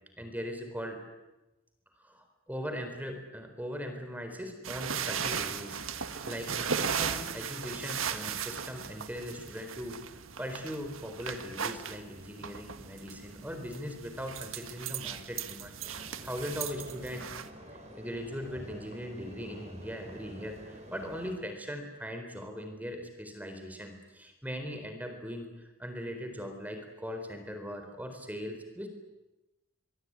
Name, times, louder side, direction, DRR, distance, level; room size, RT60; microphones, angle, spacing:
voice 1, 0.2-1.0 2.0-5.8 6.3-17.3 17.9-28.9, equal, 10° right, 5 dB, 4.1 m, -40 dB
sound 1, 4.6-17.5, right 7 dB, 70° right, 1.7 m, -37 dB
sound 2, 15.8-21.4, equal, 30° right, 4.5 m, -49 dB
24.5 x 23.0 x 9.8 m, 1.0 s
head